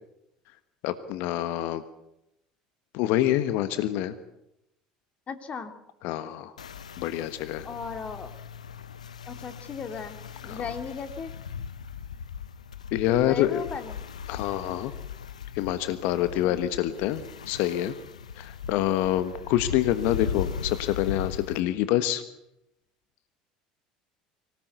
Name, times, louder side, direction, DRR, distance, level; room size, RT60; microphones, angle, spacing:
voice 1, 0.8-1.8 2.9-4.1 6.0-6.5 7.0-7.7 10.4-10.6 12.9-13.6 14.3-14.9 15.5-17.9 18.3-22.2, left 13 dB, 60° left, 12 dB, 1.3 m, -26 dB
voice 2, 5.3-5.7 7.6-8.3 9.2-10.2 10.4-11.3 13.1-14.0 16.2-16.6, left 6 dB, 35° left, 9 dB, 2.9 m, -36 dB
sound 1, 6.6-21.6, left 7 dB, 85° left, 0.9 m, -38 dB
25.0 x 18.5 x 8.2 m, 0.85 s
figure-of-eight pair, 65°, 4 cm